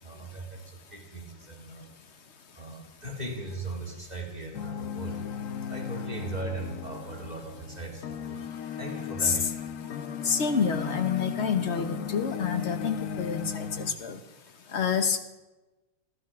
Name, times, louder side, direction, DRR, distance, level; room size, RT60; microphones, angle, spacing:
voice 1, 0.0-1.9 2.5-5.2 5.7-8.4 8.8-9.5, right 2 dB, 20° right, 1 dB, 1.8 m, -38 dB
sound 1, 4.5-13.9, left 7 dB, 60° left, 0.9 m, -36 dB
voice 2, 10.2-14.2 14.7-15.2, left 6 dB, 45° left, 9 dB, 1.0 m, -28 dB
15.0 x 12.0 x 6.2 m, 1.1 s
omnidirectional pair, 2.2 m